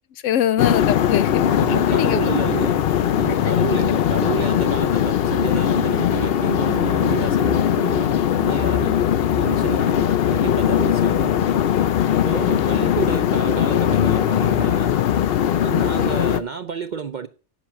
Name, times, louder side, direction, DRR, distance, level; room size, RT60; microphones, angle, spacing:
voice 1, 0.1-1.4 1.7-2.2 3.8-3.9 8.8-9.0 12.4-12.6, left 10 dB, 85° left, 1.0 m, -23 dB
sound 1, 0.6-16.4, left 10 dB, 60° left, 0.7 m, -20 dB
voice 2, 1.5-2.8 3.1-8.9 9.3-11.5 12.2-15.0 15.6-17.3, right 7 dB, 55° right, 0.5 m, -30 dB
10.0 x 6.0 x 5.9 m
omnidirectional pair, 1.3 m